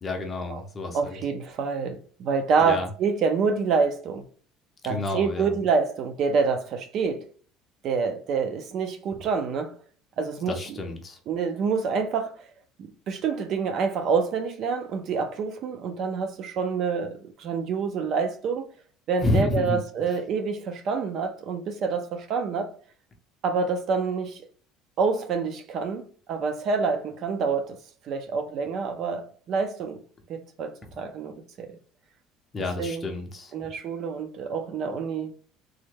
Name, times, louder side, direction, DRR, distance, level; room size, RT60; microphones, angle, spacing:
voice 1, 0.0-1.2 2.6-2.9 4.9-5.5 10.5-11.2 19.2-19.8 30.8-30.9 32.5-33.5, left 2 dB, 20° left, 0.5 m, -29 dB
voice 2, 0.9-4.2 4.8-7.3 7.8-9.7 10.2-10.8 11.3-12.3 12.8-18.7 19.1-22.7 23.4-24.4 25.0-27.8 28.1-30.0 30.3-31.7 32.8-33.1 33.5-35.3, right 5 dB, 40° right, 0.3 m, -27 dB
3.3 x 2.1 x 3.2 m
cardioid pair, 180°, 0 cm